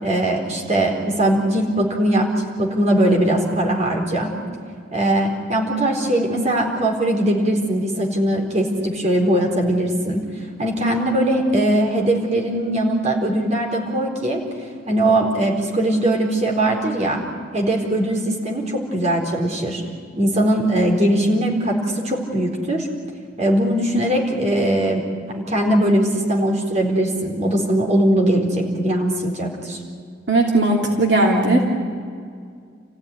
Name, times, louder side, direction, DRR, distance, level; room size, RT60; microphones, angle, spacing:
voice 1, 0.0-4.4 4.9-10.2 10.6-14.4 14.9-17.2 17.5-19.8 20.2-22.9 23.4-25.0 25.3-29.8, right 1 dB, 40° right, 0 dB, 4.2 m, -20 dB
voice 2, 30.3-31.6, right 2 dB, 65° right, -1 dB, 3.0 m, -17 dB
29.5 x 15.5 x 9.9 m, 2.2 s
head